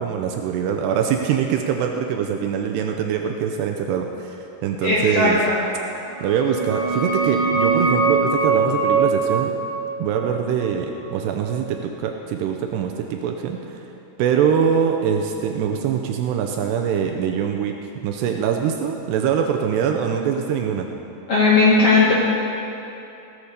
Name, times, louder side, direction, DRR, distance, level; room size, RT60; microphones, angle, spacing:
voice 1, 0.0-4.4 4.6-5.4 6.2-9.5 10.0-13.6 14.2-17.7 18.0-20.9, right 7 dB, 80° right, 3 dB, 2.8 m, -23 dB
voice 2, 4.8-5.6 21.3-22.1, left 3 dB, 55° left, -6 dB, 1.8 m, -17 dB
sound 1, 6.1-11.6, right 4 dB, 65° right, 3.1 m, -23 dB
17.5 x 8.0 x 6.7 m, 2.7 s
omnidirectional pair, 5.0 m